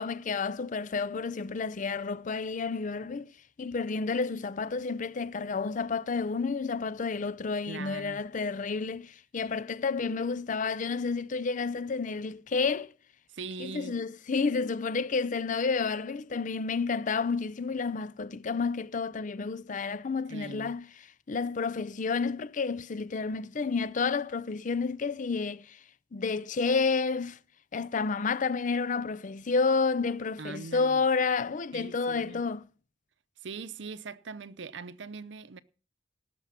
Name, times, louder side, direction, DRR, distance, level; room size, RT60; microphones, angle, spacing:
voice 1, 0.0-3.3 3.6-12.9 13.6-20.9 21.3-25.8 26.1-27.4 27.7-32.6, left 4 dB, 45° left, 0.5 m, -30 dB
voice 2, 7.7-8.3 13.3-14.0 20.3-20.8 30.4-31.0 31.7-32.4 33.4-35.6, right 4 dB, 70° right, 0.7 m, -41 dB
18.0 x 6.8 x 5.9 m
head